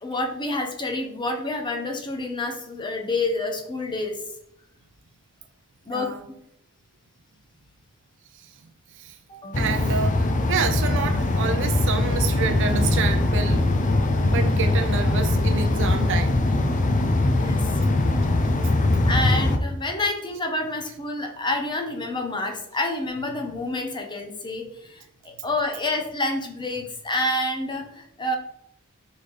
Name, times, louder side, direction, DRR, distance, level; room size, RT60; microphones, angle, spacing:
voice 1, 0.0-4.2 5.8-6.1 9.3-9.8 17.3-17.7 19.0-28.4, left 2 dB, 20° left, 1.0 m, -28 dB
voice 2, 5.9-6.2 8.4-8.5 9.0-9.2 9.6-13.7 14.2-16.4, right 6 dB, 60° right, 0.5 m, -28 dB
sound 1, 9.5-19.6, left 2 dB, 35° left, 0.6 m, -21 dB
5.1 x 4.1 x 4.9 m
head